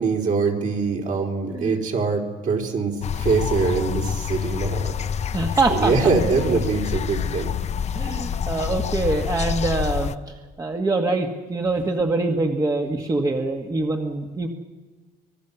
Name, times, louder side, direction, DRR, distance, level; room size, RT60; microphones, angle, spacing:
voice 1, 0.0-4.9 5.7-7.5, right 4 dB, 50° right, 1 dB, 4.0 m, -23 dB
sound 1, 3.0-10.1, left 8 dB, 40° left, 0.7 m, -27 dB
voice 2, 5.3-5.9 7.9-14.5, right 3 dB, 20° right, 3 dB, 1.6 m, -24 dB
25.0 x 18.5 x 7.0 m, 1.3 s
cardioid pair, 110°, 17 cm